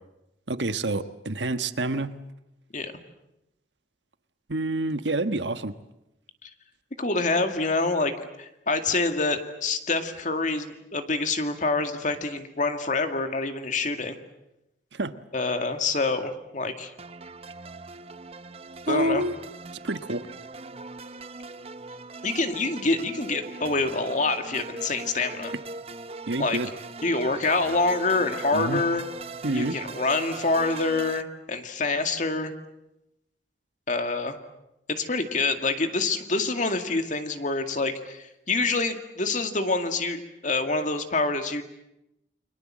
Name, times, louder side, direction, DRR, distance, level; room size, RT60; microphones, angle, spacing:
voice 1, 0.5-2.2 4.5-5.7 14.9-15.1 18.9-19.3 19.8-20.2 26.3-26.7 28.5-28.8 29.4-29.8, right 2 dB, 85° right, 11 dB, 1.3 m, -27 dB
voice 2, 7.0-14.2 15.3-16.9 18.9-19.2 22.2-25.5 26.4-26.6 27.0-29.0 29.5-32.5 33.9-34.4 34.9-41.6, left 3 dB, 45° left, 7 dB, 2.2 m, -26 dB
sound 1, 17.0-31.2, right 3 dB, 35° right, 1.0 m, -40 dB
29.5 x 24.5 x 7.5 m, 0.88 s
head